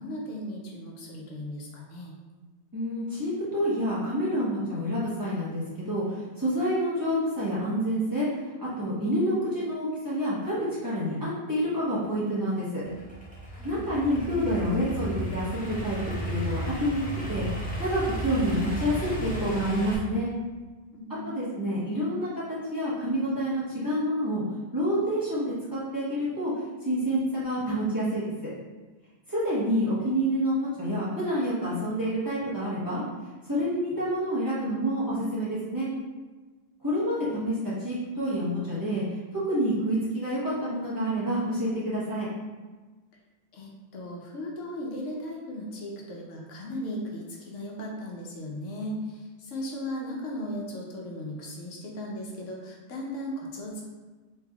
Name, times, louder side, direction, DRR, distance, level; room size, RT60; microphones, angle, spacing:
voice 1, 0.0-2.1 13.5-13.7 20.9-21.3 43.5-53.9, left 1 dB, 85° left, -1 dB, 1.0 m, -37 dB
voice 2, 2.7-8.3 8.6-12.8 13.6-16.0 16.3-17.0 17.3-17.5 17.8-20.3 21.2-22.3 22.7-24.4 24.7-26.5 26.8-28.2 29.3-33.0 33.4-35.9 36.8-42.3, equal, 20° right, -11 dB, 0.9 m, -28 dB
Idling / Accelerating revving vroom, 12.8-20.0, right 1 dB, 10° left, 0.4 m, -34 dB
3.3 x 3.1 x 2.3 m, 1.3 s
omnidirectional pair, 1.3 m